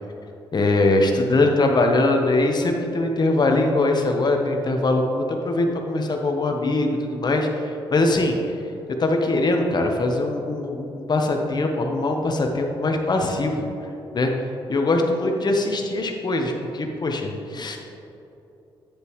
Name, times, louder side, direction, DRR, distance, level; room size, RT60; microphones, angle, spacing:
voice 1, 0.5-8.4 9.0-13.7 14.1-14.3 14.7-17.8, left 2 dB, 45° left, 3 dB, 0.9 m, -22 dB
9.8 x 6.7 x 3.1 m, 2.8 s
cardioid pair, 65°, 10 cm